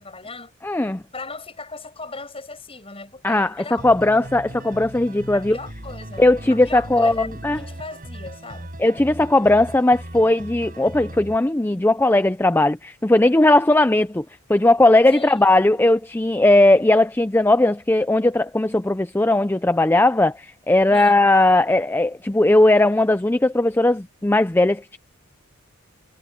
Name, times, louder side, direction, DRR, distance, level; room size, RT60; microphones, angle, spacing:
voice 1, 0.0-0.5 1.1-3.8 5.3-8.7 15.1-15.5 20.9-21.2, left 3 dB, 25° left, 7.5 m, -37 dB
voice 2, 0.6-1.0 3.2-5.6 6.2-7.6 8.8-25.0, left 2 dB, 10° left, 0.4 m, -18 dB
sound 1, 3.8-11.4, right 1 dB, 40° right, 5.5 m, -38 dB
head